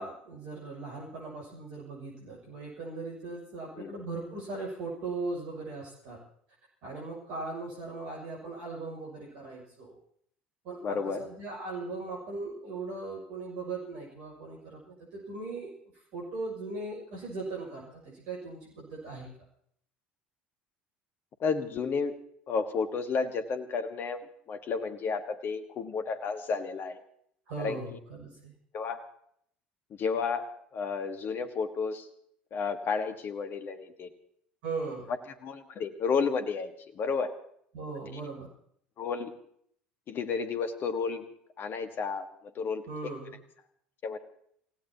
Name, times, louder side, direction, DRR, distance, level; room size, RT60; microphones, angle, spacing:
voice 1, 0.0-6.2 6.8-10.0 10.6-15.7 16.1-19.3 27.5-28.5 34.6-35.1 37.7-38.5 42.9-43.4, right 3 dB, 60° right, -4 dB, 6.8 m, -39 dB
voice 2, 10.8-11.2 21.4-22.1 22.5-27.0 27.6-28.0 28.7-29.0 30.0-32.1 32.5-34.1 35.4-37.3 39.0-39.3 40.1-41.2 41.6-42.3 42.5-42.9 44.0-44.2, left 5 dB, 40° left, 8 dB, 1.6 m, -32 dB
28.5 x 16.5 x 3.0 m, 0.65 s
figure-of-eight pair, 65°, 5 cm